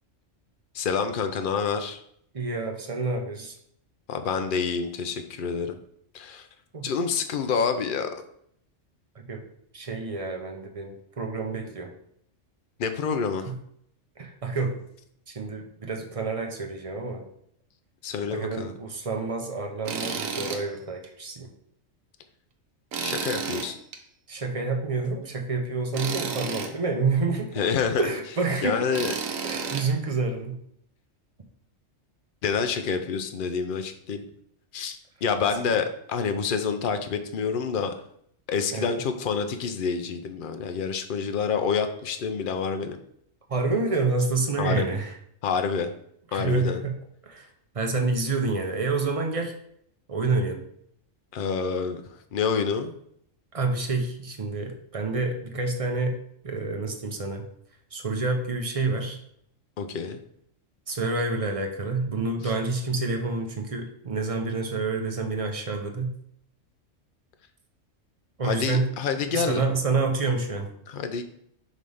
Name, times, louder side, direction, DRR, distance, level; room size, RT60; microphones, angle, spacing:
voice 1, 0.7-2.0 4.1-5.8 6.1-6.5 6.8-8.1 12.8-13.5 18.0-18.7 23.0-23.8 27.6-28.1 28.6-29.1 32.4-34.3 34.7-37.9 38.5-43.0 44.6-44.8 45.4-45.9 46.3-46.8 51.3-52.0 52.3-52.9 59.8-60.2 68.4-69.6 70.9-71.2, left 6 dB, 55° left, 7 dB, 0.7 m, -27 dB
voice 2, 2.3-3.6 6.7-6.9 9.2-9.4 9.7-11.9 13.5-13.6 14.2-14.8 15.3-17.2 18.3-21.5 24.3-27.7 28.0-28.9 29.4-30.6 35.6-35.7 38.7-39.0 43.5-45.2 46.3-46.9 47.2-47.5 47.7-49.5 50.1-50.6 53.5-56.2 56.4-57.4 57.9-59.2 60.9-66.1 68.4-68.9 69.3-70.7, right 3 dB, 35° right, 3 dB, 0.6 m, -28 dB
Tools, 19.9-20.6 21.0-21.1 22.9-24.0 25.9-26.7 28.9-29.8, right 6 dB, 90° right, 1.2 m, -31 dB
5.3 x 3.3 x 5.4 m, 0.69 s
omnidirectional pair, 1.3 m